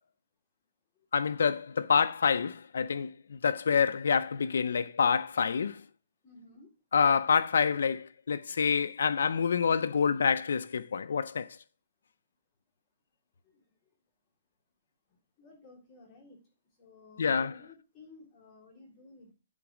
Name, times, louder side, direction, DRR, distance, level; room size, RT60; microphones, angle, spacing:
voice 1, 1.1-5.8 6.9-11.5 17.2-17.6, left 6 dB, 85° left, 0.5 m, -27 dB
voice 2, 6.2-6.7 13.4-13.6 15.4-16.5 16.8-19.3, left 3 dB, 15° left, 3.6 m, -55 dB
8.2 x 4.0 x 6.2 m
hypercardioid pair, 170°, 0 cm